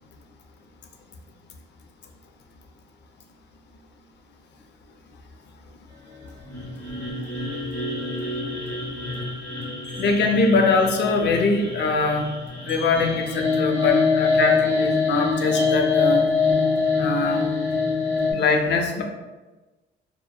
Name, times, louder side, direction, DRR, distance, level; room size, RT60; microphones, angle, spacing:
sound 1, 6.4-18.3, left 4 dB, 10° left, 1.1 m, -24 dB
sound 2, 9.8-10.8 12.7-14.0 15.5-17.1, left 2 dB, 60° right, 1.3 m, -41 dB
voice 1, 10.0-12.3 12.7-16.2 17.0-17.5 18.3-19.0, left 3 dB, 60° left, 3 dB, 0.4 m, -22 dB
2.8 x 2.1 x 2.2 m, 1.2 s
cardioid pair, 90°, 20 cm